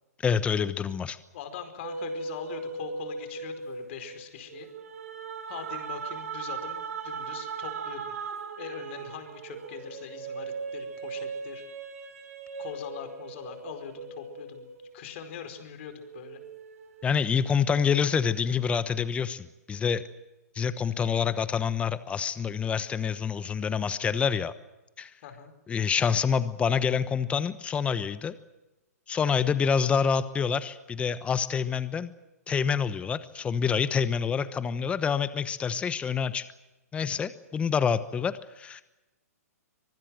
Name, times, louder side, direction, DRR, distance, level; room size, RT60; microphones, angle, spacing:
voice 1, 0.2-1.2 17.0-20.0 20.5-24.5 25.0-25.1 25.7-28.3 29.1-32.1 32.5-36.5 36.9-38.8, left 6 dB, 15° left, 14 dB, 1.1 m, -27 dB
voice 2, 1.3-4.7 5.5-8.0 8.6-11.6 12.6-16.4 25.2-25.5, left 8 dB, 50° left, 8 dB, 4.8 m, -42 dB
sound 1, 1.8-15.6 16.0-17.6, right 5 dB, 65° right, 7.0 m, -39 dB
24.5 x 20.0 x 7.7 m, 0.99 s
hypercardioid pair, 130°, 9 cm